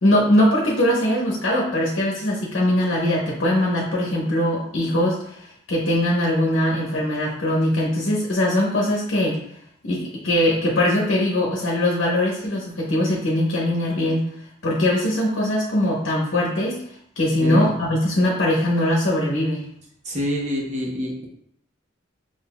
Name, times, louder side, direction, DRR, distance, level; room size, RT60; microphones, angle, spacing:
voice 1, 0.0-9.4 9.8-14.2 14.6-16.8 17.2-19.7, left 1 dB, 80° left, -4 dB, 0.9 m, -21 dB
voice 2, 17.4-17.7 20.0-21.3, equal, 35° right, -3 dB, 0.9 m, -27 dB
5.8 x 2.6 x 2.2 m, 0.71 s
head